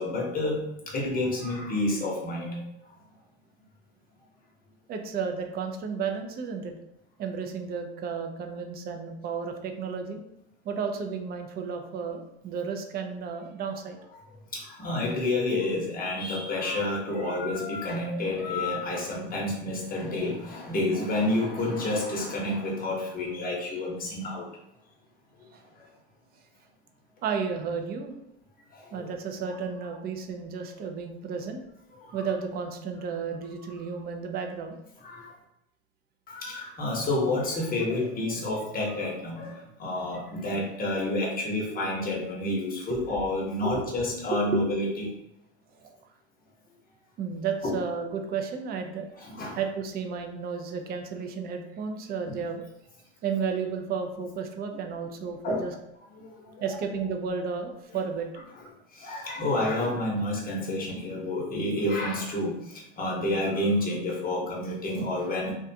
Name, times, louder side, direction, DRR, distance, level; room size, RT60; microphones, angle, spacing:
voice 1, 0.0-2.6 14.5-24.5 28.7-29.1 32.0-32.2 33.6-33.7 35.0-35.4 36.3-45.1 47.6-47.8 49.2-49.6 52.2-52.4 55.4-55.6 56.2-56.7 58.9-65.5, left 1 dB, 25° left, -2 dB, 0.9 m, -29 dB
voice 2, 4.9-6.7 7.2-10.2 10.6-14.0 25.5-25.6 27.2-28.1 28.9-31.6 32.1-34.8 42.9-43.1 43.6-44.0 44.3-44.7 47.2-49.1 49.5-52.6 53.2-55.8 56.6-58.3, right 5 dB, 30° right, 4 dB, 0.4 m, -32 dB
2.4 x 2.2 x 2.7 m, 0.83 s
supercardioid pair, 105°, 32 cm